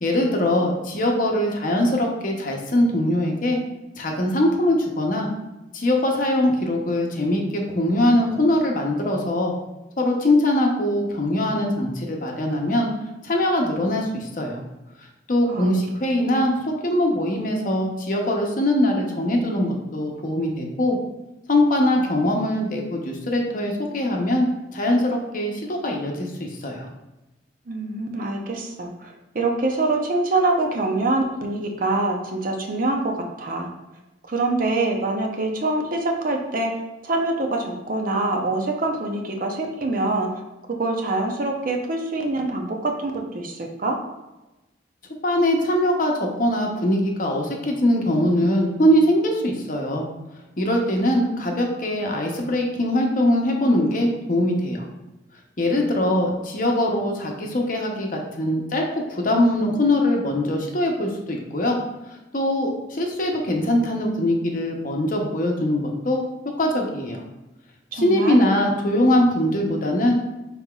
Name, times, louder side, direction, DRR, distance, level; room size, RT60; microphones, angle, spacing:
voice 1, 0.0-3.6 4.0-5.3 5.7-9.5 10.0-12.9 13.2-14.6 15.3-21.0 21.5-24.5 24.7-26.9 45.2-50.0 50.6-54.8 55.6-61.8 62.3-66.2 66.6-67.2 67.9-70.1, left 1 dB, 45° left, 1 dB, 0.7 m, -22 dB
voice 2, 27.7-33.7 34.3-36.7 37.0-40.3 40.7-44.0 67.9-68.6, right 2 dB, 45° right, 2 dB, 0.6 m, -25 dB
5.7 x 4.0 x 2.3 m, 1.0 s
head